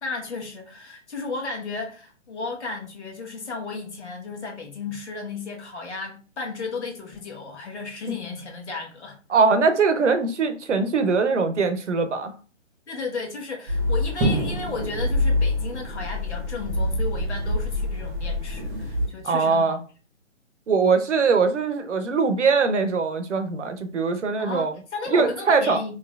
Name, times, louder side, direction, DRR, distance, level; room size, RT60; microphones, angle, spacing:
voice 1, 0.0-9.2 12.9-19.8 24.4-26.0, left 4 dB, 65° left, 1.4 m, -34 dB
voice 2, 9.3-12.3 19.2-19.8 20.7-24.7 25.1-25.8, right 4 dB, 70° right, 0.8 m, -21 dB
sound 1, 13.7-19.1, left 1 dB, 15° right, 1.1 m, -25 dB
4.5 x 3.0 x 2.3 m
figure-of-eight pair, 135°, 38 cm